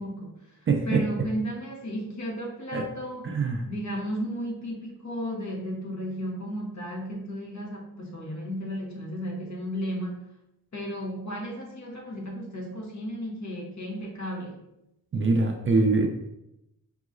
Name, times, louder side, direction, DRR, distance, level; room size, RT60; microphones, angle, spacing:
voice 1, 0.0-3.3 3.7-10.3 10.7-14.6, equal, 55° left, -1 dB, 1.1 m, -34 dB
voice 2, 0.7-1.2 2.7-2.8 3.2-3.6 15.1-16.1, right 3 dB, 35° right, 3 dB, 0.4 m, -24 dB
5.5 x 2.9 x 2.5 m, 0.87 s
wide cardioid pair, 120°, 35 cm